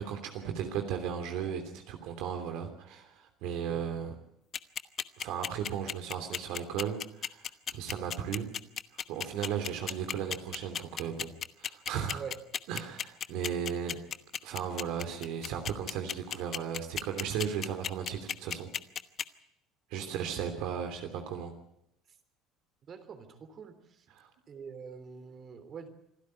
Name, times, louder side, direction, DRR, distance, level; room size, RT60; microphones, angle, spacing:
voice 1, 0.0-4.1 5.2-7.5 7.7-8.5 9.1-11.3 11.6-12.2 12.7-14.0 14.4-18.7 19.9-21.5 24.1-24.3, right 8 dB, 75° right, 5 dB, 3.1 m, -35 dB
sound 1, 4.5-19.2, left 9 dB, 45° left, 1.0 m, -34 dB
voice 2, 22.9-23.8 24.5-25.9, right 6 dB, 45° right, 9 dB, 3.5 m, -44 dB
26.0 x 12.5 x 9.8 m, 0.78 s
supercardioid pair, 95°, 0 cm